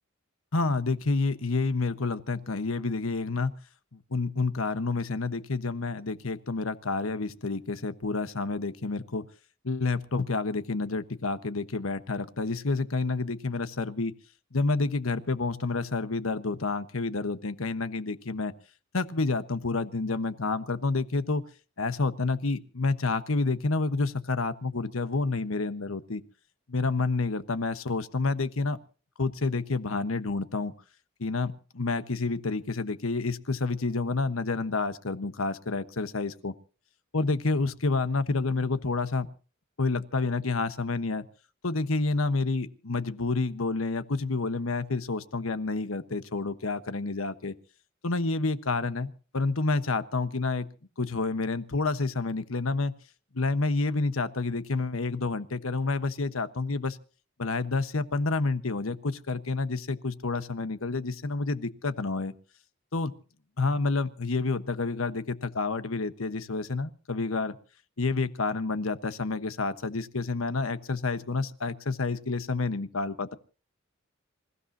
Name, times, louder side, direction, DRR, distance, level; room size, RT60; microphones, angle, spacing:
voice 1, 0.5-3.5 3.9-9.2 9.6-14.1 14.5-18.5 18.9-21.4 21.8-26.2 26.7-28.8 29.2-30.7 31.2-36.5 37.1-39.3 39.8-41.3 41.6-47.5 48.0-50.7 51.0-52.9 53.3-57.0 57.4-62.3 62.9-63.1 63.6-67.6 68.0-73.3, left 3 dB, 85° left, 11 dB, 1.2 m, -29 dB
27.0 x 15.5 x 2.8 m, 0.37 s
head